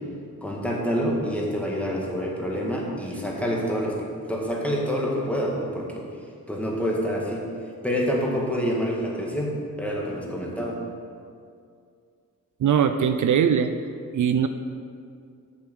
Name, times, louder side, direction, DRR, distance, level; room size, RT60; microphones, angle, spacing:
voice 1, 0.4-6.1 6.5-7.5 7.8-10.8, equal, 5° left, -3 dB, 1.9 m, -27 dB
voice 2, 12.6-13.7 14.1-14.5, right 8 dB, 70° right, 8 dB, 0.5 m, -20 dB
8.0 x 7.1 x 6.3 m, 2.3 s
wide cardioid pair, 100°, 32 cm